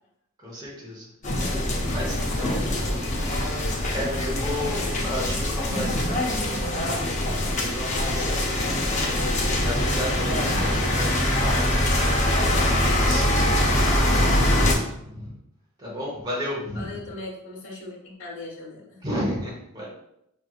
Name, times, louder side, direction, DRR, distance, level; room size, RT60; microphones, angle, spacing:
voice 1, 0.4-1.1 1.4-3.4 3.7-11.7 12.0-13.6 14.9-15.3 15.8-17.0 19.0-19.9, equal, 20° right, -5 dB, 0.9 m, -34 dB
sound 1, 1.2-14.7, left 1 dB, 35° left, 0.6 m, -23 dB
voice 2, 13.8-14.8 16.7-19.0, left 2 dB, 65° left, -4 dB, 1.2 m, -38 dB
5.0 x 3.0 x 2.4 m, 0.79 s
head